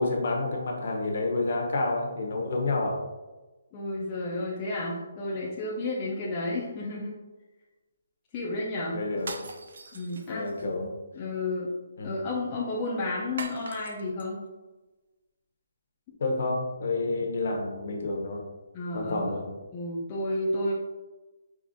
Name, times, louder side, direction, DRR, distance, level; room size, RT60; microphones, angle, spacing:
voice 1, 0.0-3.0 8.9-9.3 10.3-10.9 12.0-12.1 16.2-18.4 18.9-19.4, left 2 dB, 45° left, 1 dB, 0.7 m, -29 dB
voice 2, 3.7-7.1 8.3-9.0 9.9-10.5 11.2-11.7 12.0-14.4 18.7-19.4 19.7-20.7, left 2 dB, 15° left, -5 dB, 0.4 m, -31 dB
sound 1, 9.2-10.6 13.4-14.3, right 3 dB, 50° right, 0.4 m, -41 dB
4.8 x 3.1 x 2.6 m, 1.1 s
hypercardioid pair, 180°, 0 cm